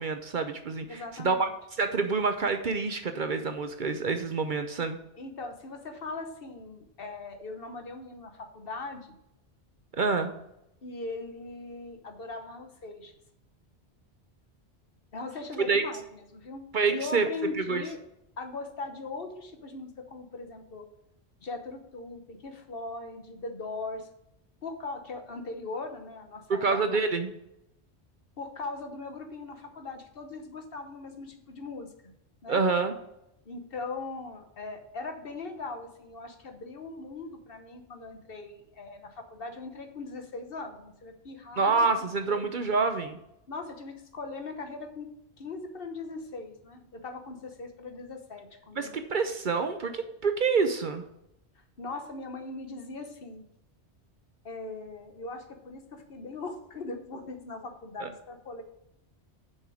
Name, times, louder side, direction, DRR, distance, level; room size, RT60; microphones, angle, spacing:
voice 1, 0.0-1.5 1.8-5.0 9.9-10.3 15.7-15.8 16.7-17.3 17.7-17.8 26.5-27.3 32.5-32.9 41.6-43.2 48.8-51.0 58.0-58.1, right 4 dB, 50° right, 8 dB, 0.7 m, -27 dB
voice 2, 0.9-1.5 5.2-9.2 10.8-13.1 15.1-16.6 16.9-18.0 18.4-20.9 21.4-24.1 24.6-26.8 28.4-31.9 32.4-32.6 33.4-41.9 42.3-42.4 43.5-45.1 45.4-48.9 51.5-53.4 54.4-58.6, left 3 dB, 55° left, 5 dB, 1.2 m, -40 dB
6.7 x 5.6 x 6.2 m, 0.83 s
omnidirectional pair, 1.1 m